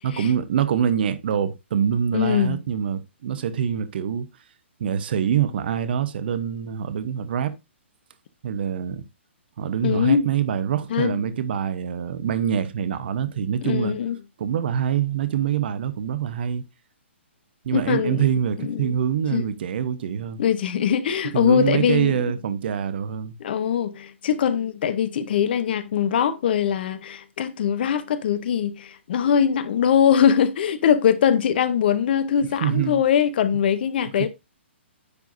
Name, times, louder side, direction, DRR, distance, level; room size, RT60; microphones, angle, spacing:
voice 1, 0.0-4.3 4.8-7.5 8.4-9.0 9.6-14.0 14.4-16.6 17.6-20.4 21.3-23.4 32.6-33.0 34.2-34.3, right 8 dB, 50° right, 0.8 m, -25 dB
voice 2, 2.1-2.6 9.8-10.3 10.9-11.2 13.6-14.2 17.7-18.3 18.6-19.0 19.3-19.4 20.4-22.3 23.4-34.3, left 8 dB, 50° left, 0.7 m, -22 dB
9.5 x 4.7 x 2.5 m
figure-of-eight pair, 125°, 7 cm